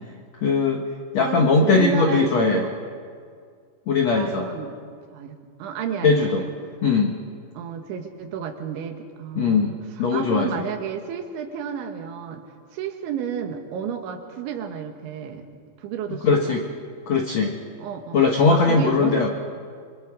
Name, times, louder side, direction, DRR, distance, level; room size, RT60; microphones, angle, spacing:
voice 1, 0.4-0.8 1.1-2.6 3.9-4.5 6.0-6.4 6.8-7.1 9.3-9.7 10.0-10.6 16.2-16.6 17.1-17.5 18.1-19.3, left 4 dB, 80° left, 2 dB, 1.5 m, -20 dB
voice 2, 1.2-2.7 4.1-4.8 5.1-6.5 7.6-12.4 12.7-16.6 17.8-18.2 18.5-19.3, right 8 dB, 85° right, 5 dB, 3.9 m, -31 dB
26.0 x 25.5 x 4.9 m, 2.1 s
omnidirectional pair, 5.3 m